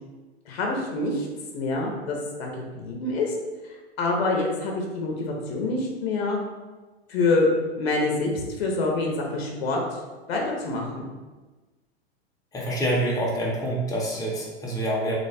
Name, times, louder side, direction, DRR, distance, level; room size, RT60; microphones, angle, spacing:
voice 1, 0.5-1.3 1.5-3.3 4.0-6.4 7.1-7.5 7.8-10.0 10.3-11.1, left 3 dB, 65° left, 0 dB, 0.8 m, -26 dB
voice 2, 12.5-15.1, right 1 dB, 10° left, -4 dB, 0.8 m, -26 dB
3.0 x 2.1 x 4.1 m, 1.3 s
hypercardioid pair, 105°, 32 cm